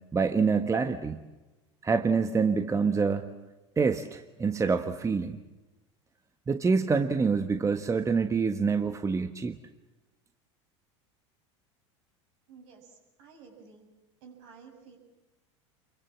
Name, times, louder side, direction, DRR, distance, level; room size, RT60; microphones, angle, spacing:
voice 1, 0.1-1.2 1.8-3.3 3.8-5.4 6.5-9.6, right 5 dB, 20° right, 8 dB, 1.4 m, -26 dB
voice 2, 12.5-13.9 14.2-15.0, right 5 dB, 65° right, 3 dB, 7.2 m, -52 dB
28.0 x 23.0 x 7.5 m, 1.1 s
hypercardioid pair, 85°, 15 cm